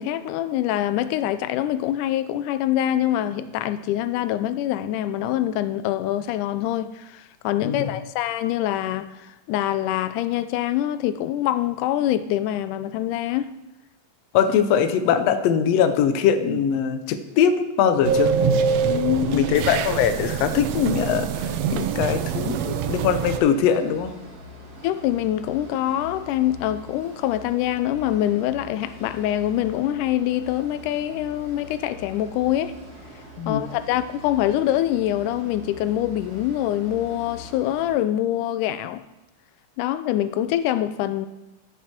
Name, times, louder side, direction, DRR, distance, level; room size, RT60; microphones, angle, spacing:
voice 1, 0.0-13.5 18.8-19.5 24.8-32.8 33.5-39.0 39.8-41.3, left 12 dB, 90° left, 2.1 m, -25 dB
voice 2, 14.3-18.4 19.3-21.3 21.7-24.1 33.4-33.6, left 8 dB, 75° left, 1.6 m, -21 dB
sound 1, 18.0-23.4, right 6 dB, 75° right, 1.7 m, -24 dB
sound 2, 21.9-37.9, left 1 dB, 40° right, 1.5 m, -43 dB
13.0 x 7.0 x 4.4 m
omnidirectional pair, 3.5 m